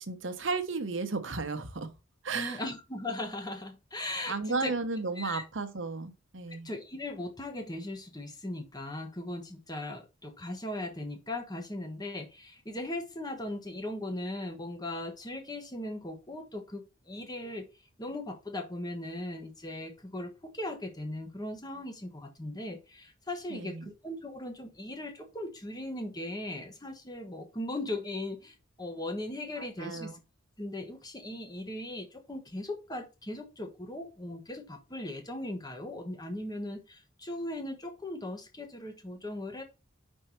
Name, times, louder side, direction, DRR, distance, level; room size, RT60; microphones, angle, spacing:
voice 1, 0.0-1.9 2.2-2.6 4.3-6.7 23.5-23.8 29.6-30.2, right 4 dB, 65° right, 1.0 m, -34 dB
voice 2, 2.3-4.7 5.1-5.4 6.6-17.7 18.0-30.2 30.6-39.6, left 1 dB, 20° left, 1.3 m, -38 dB
5.5 x 4.5 x 4.5 m
head